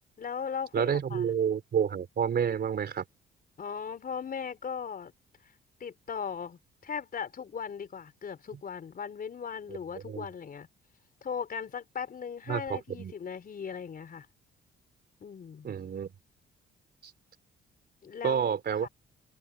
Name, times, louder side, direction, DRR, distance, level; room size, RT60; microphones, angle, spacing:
voice 1, 0.2-1.3 3.6-5.1 5.8-10.7 11.2-14.3 15.2-15.7 18.0-18.5 18.8-18.9, left 7 dB, 50° left, 4.5 m, -38 dB
voice 2, 0.7-3.0 9.7-9.8 10.1-10.3 12.5-13.1 15.6-16.1 17.0-17.1 18.2-18.9, right 7 dB, 55° right, 3.5 m, -29 dB
cardioid pair, 90°, 20 cm